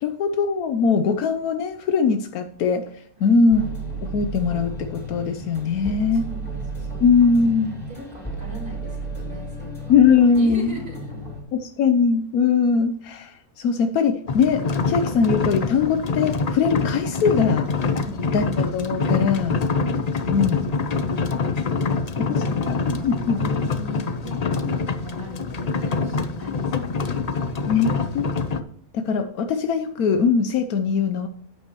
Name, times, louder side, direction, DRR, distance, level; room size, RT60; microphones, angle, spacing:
voice 1, 0.0-2.9 3.2-3.6 4.0-6.2 7.0-7.8 9.9-10.8 11.5-14.6 14.9-17.7 18.3-18.5 18.7-19.6 20.3-20.6 22.2-23.4 27.7-27.9 28.1-28.3 28.9-31.3, left 5 dB, 85° left, 7 dB, 1.2 m, -21 dB
sound 1, 3.5-11.4, right 2 dB, 5° left, 2.9 m, -33 dB
voice 2, 6.1-11.3 18.0-18.4 20.1-21.3 21.8-27.2, left 1 dB, 90° right, -3 dB, 4.6 m, -40 dB
sound 2, 14.3-28.6, left 4 dB, 45° left, 0.5 m, -25 dB
12.0 x 8.6 x 2.9 m, 0.65 s
omnidirectional pair, 1.5 m